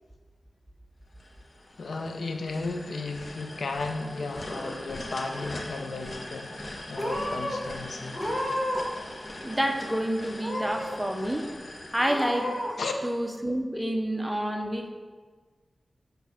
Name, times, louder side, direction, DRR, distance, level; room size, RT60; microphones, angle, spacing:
sound 1, 1.2-13.3, left 1 dB, 50° left, 1.1 m, -42 dB
voice 1, 1.8-8.2 12.8-12.9, left 3 dB, 80° left, 4 dB, 0.8 m, -34 dB
Purr / Meow, 4.2-5.0 5.3-5.9 6.6-6.7 7.0-7.6 8.1-9.0 9.2-10.0 10.4-11.0 11.4-11.5 12.0-12.7, left 1 dB, 30° left, 1.6 m, -32 dB
voice 2, 9.4-11.4 11.9-12.5 13.0-14.9, equal, 10° right, 3 dB, 1.0 m, -28 dB
8.1 x 3.5 x 5.8 m, 1.4 s
cardioid pair, 45°, 0 cm